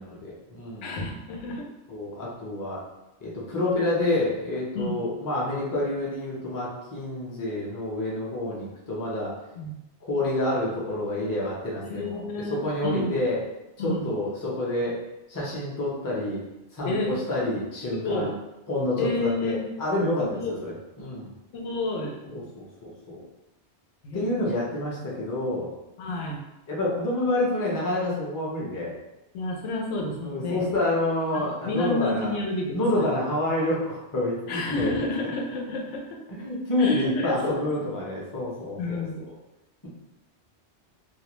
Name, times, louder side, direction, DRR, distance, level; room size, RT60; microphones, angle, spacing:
voice 1, 0.0-0.9 1.9-2.8 3.2-9.3 10.1-13.4 13.8-15.0 15.3-16.4 16.7-18.3 18.7-21.3 22.3-23.2 24.1-25.7 26.7-29.0 30.2-32.3 32.7-35.3 36.4-39.0, left 1 dB, 25° left, -5 dB, 0.5 m, -28 dB
voice 2, 0.8-1.6 4.7-5.0 9.6-9.7 11.8-13.2 13.8-14.1 16.8-17.1 17.9-18.3 19.0-19.6 20.2-20.6 21.5-22.5 24.0-24.4 26.0-26.4 29.3-30.7 31.3-33.2 34.5-36.2 36.8-37.7 38.8-39.2, left 2 dB, 90° left, 0 dB, 0.9 m, -30 dB
2.4 x 2.1 x 2.9 m, 0.96 s
omnidirectional pair, 1.2 m